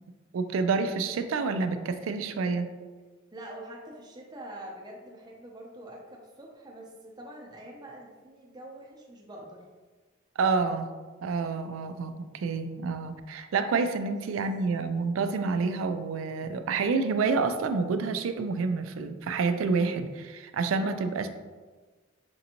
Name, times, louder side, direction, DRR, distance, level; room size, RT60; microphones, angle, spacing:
voice 1, 0.3-2.7 10.4-10.9 11.2-21.3, right 4 dB, 90° right, 9 dB, 0.3 m, -28 dB
voice 2, 3.3-9.6 14.0-14.1 20.8-21.1, right 1 dB, 20° right, -2 dB, 0.6 m, -45 dB
5.2 x 2.6 x 2.8 m, 1.3 s
head